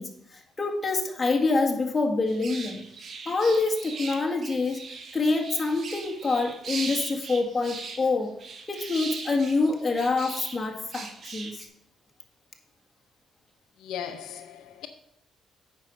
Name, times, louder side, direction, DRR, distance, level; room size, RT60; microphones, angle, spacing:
voice 1, 0.0-2.8 3.3-4.8 5.1-8.3 8.7-11.7, left 3 dB, 25° left, 1.8 m, -26 dB
sound 1, 2.3-10.6 10.9-11.7, right 4 dB, 50° right, 1.4 m, -39 dB
voice 2, 13.8-14.9, left 9 dB, 85° left, 0.7 m, -37 dB
8.8 x 5.3 x 6.3 m
cardioid pair, 90°, 0 cm